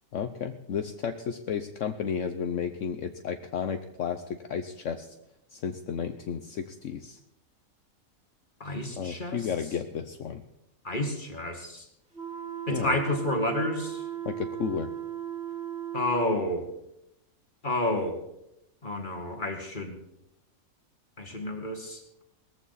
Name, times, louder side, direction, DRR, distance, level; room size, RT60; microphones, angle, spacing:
voice 1, 0.1-5.1 5.5-7.2 9.0-10.4 12.7-13.0 14.2-14.9, left 7 dB, 65° left, 8 dB, 1.1 m, -33 dB
voice 2, 8.6-9.5 10.8-11.9 12.7-14.1 15.9-16.6 17.6-18.2 18.8-20.0 21.2-22.2, left 1 dB, 35° left, 3 dB, 2.1 m, -30 dB
sound 1, 12.1-16.4, right 9 dB, 45° right, 6.7 m, -36 dB
20.0 x 14.5 x 4.1 m, 0.82 s
omnidirectional pair, 1.5 m